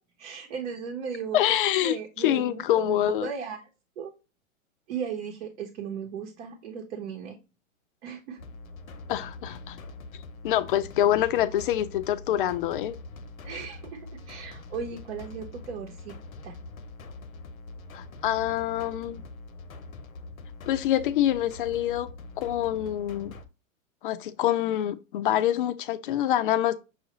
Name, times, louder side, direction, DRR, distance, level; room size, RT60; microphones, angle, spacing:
voice 1, 0.2-1.4 1.8-3.6 4.0-4.1 4.9-7.4 8.0-8.4 13.4-16.2 16.4-16.5, right 6 dB, 55° right, 1.1 m, -36 dB
voice 2, 1.3-3.3 9.1-9.8 10.4-12.9 17.9-19.2 20.7-22.1 22.4-23.3 24.0-26.8, left 12 dB, 40° left, 0.4 m, -26 dB
sound 1, 8.4-23.5, left 2 dB, 90° left, 0.8 m, -43 dB
6.3 x 2.4 x 2.9 m
hypercardioid pair, 125°, 41 cm